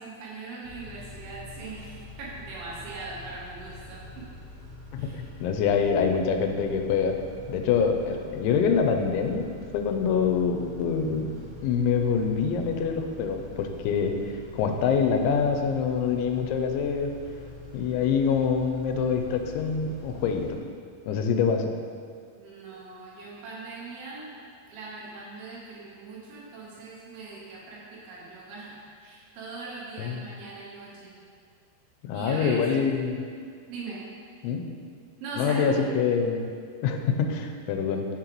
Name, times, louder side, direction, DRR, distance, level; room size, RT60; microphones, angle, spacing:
voice 1, 0.0-4.3 4.9-5.2 22.4-24.4 24.7-31.2 32.1-32.8 33.7-34.1 35.2-35.7, right 3 dB, 85° right, -6 dB, 3.5 m, -40 dB
Car / Idling / Accelerating revving vroom, 0.6-20.5, left 2 dB, 40° right, 2.0 m, -45 dB
voice 2, 4.9-7.2 7.5-11.3 11.6-14.2 14.5-17.1 17.7-20.6 21.1-21.7 30.0-30.2 32.1-33.2 34.4-34.7 35.4-36.5 36.8-38.1, left 6 dB, 85° left, 5 dB, 3.0 m, -25 dB
7.6 x 7.2 x 3.0 m, 2.1 s
omnidirectional pair, 5.2 m